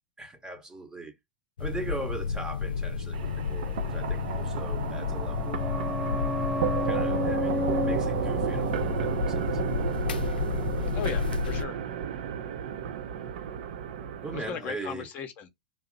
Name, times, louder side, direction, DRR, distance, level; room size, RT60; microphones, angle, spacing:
voice 1, 0.2-1.2 1.6-5.6 6.8-9.5 14.2-15.1, right 2 dB, 10° right, 0.9 m, -40 dB
sound 1, 1.6-11.6, left 6 dB, 75° left, 0.4 m, -32 dB
sound 2, 3.1-14.5, right 9 dB, 60° right, 0.5 m, -33 dB
sound 3, 4.9-10.3 10.6-10.7, left 3 dB, 5° left, 0.3 m, -33 dB
voice 2, 10.9-11.8 14.3-15.5, left 7 dB, 35° left, 0.7 m, -37 dB
2.7 x 2.0 x 3.8 m
hypercardioid pair, 100°, 5 cm